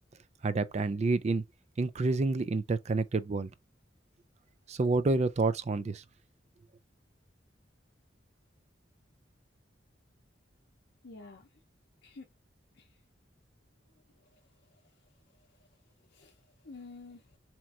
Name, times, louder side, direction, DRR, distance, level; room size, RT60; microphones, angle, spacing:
voice 1, 0.4-1.4 1.8-3.5 4.7-6.0, right 3 dB, 40° right, 0.4 m, -28 dB
voice 2, 11.0-11.5 12.0-12.3 12.7-13.0 14.1-14.9 15.4-15.6 16.0-17.4, left 3 dB, 60° left, 0.7 m, -51 dB
4.4 x 3.0 x 2.4 m
head